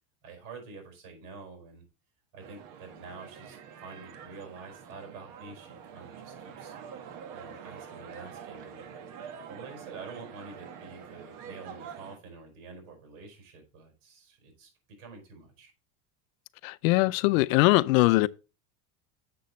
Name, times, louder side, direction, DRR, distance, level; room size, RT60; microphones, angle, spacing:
voice 1, 0.2-1.8 2.3-6.7 7.3-8.9 9.4-15.7, right 4 dB, 70° right, 4.8 m, -47 dB
sound 1, 2.4-12.2, right 7 dB, 50° right, 1.3 m, -46 dB
voice 2, 16.6-18.3, left 21 dB, 75° left, 0.6 m, -22 dB
7.6 x 6.2 x 4.0 m
supercardioid pair, 140°, 41 cm